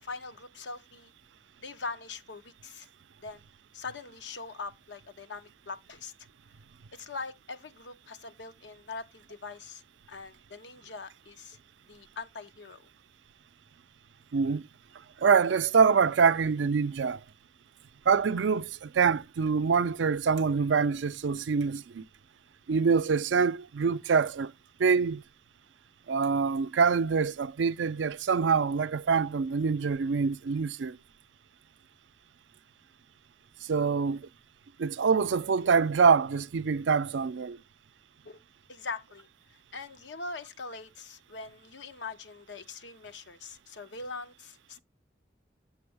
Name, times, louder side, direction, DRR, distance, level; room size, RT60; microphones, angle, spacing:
voice 1, 0.0-1.1 1.6-2.9 3.2-3.4 3.7-6.1 6.9-9.8 10.1-11.6 11.9-12.8 38.2-38.4 38.7-39.3 39.7-44.8, left 4 dB, 75° left, 0.9 m, -42 dB
voice 2, 14.3-14.6 15.2-17.2 18.1-22.0 22.7-24.5 24.8-25.2 26.1-31.0 33.6-34.3 34.8-37.6, right 5 dB, 80° right, 0.4 m, -25 dB
7.8 x 5.8 x 3.4 m
head